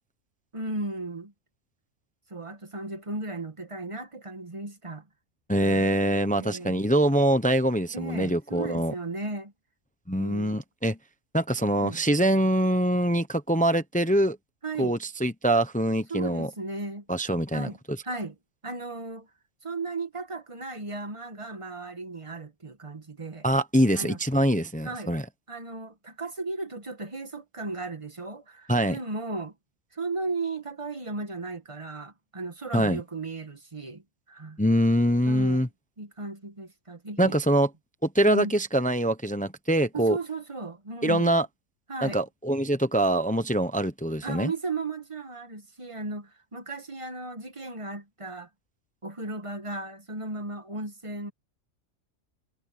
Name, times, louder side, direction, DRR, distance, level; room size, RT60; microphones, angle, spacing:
voice 1, 0.5-1.3 2.3-5.1 6.4-6.8 7.9-9.5 10.1-10.6 11.6-12.0 14.6-15.0 16.1-17.0 17.5-17.8 18.0-18.3 18.6-19.3 19.6-23.4 23.9-24.2 24.8-25.2 25.5-29.5 29.9-34.0 34.3-34.6 35.2-35.7 36.0-37.4 38.2-38.5 39.9-41.4 41.9-42.2 44.2-48.5 49.0-51.3, right 3 dB, 25° right, 1.4 m, -35 dB
voice 2, 5.5-8.9 10.1-11.0 11.3-14.4 14.8-16.5 17.1-17.7 23.4-25.2 28.7-29.0 32.7-33.0 34.6-35.7 37.2-37.7 38.0-40.2 41.0-41.5 42.0-44.5, right 1 dB, 5° left, 0.8 m, -24 dB
omnidirectional pair, 1.4 m